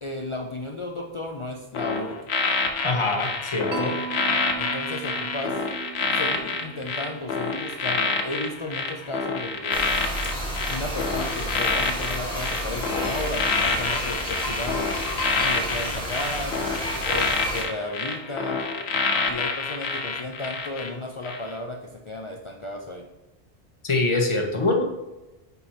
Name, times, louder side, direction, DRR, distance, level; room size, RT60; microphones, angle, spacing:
voice 1, 0.0-2.2 4.6-5.7 6.1-9.8 10.7-14.8 15.4-16.6 17.1-18.6 19.3-21.8 22.1-23.1, left 2 dB, 50° left, 2 dB, 0.3 m, -34 dB
sound 1, 1.7-20.9 21.2-21.5, left 4 dB, 75° left, 0.9 m, -27 dB
voice 2, 2.8-4.0 23.8-24.8, left 2 dB, 30° left, 2 dB, 0.7 m, -24 dB
Mallet percussion, 3.7-7.7, right 8 dB, 85° right, 0.9 m, -38 dB
sound 2, 9.7-17.6, equal, 5° left, 1.2 m, -31 dB
5.3 x 4.3 x 4.2 m, 1.0 s
omnidirectional pair, 1.1 m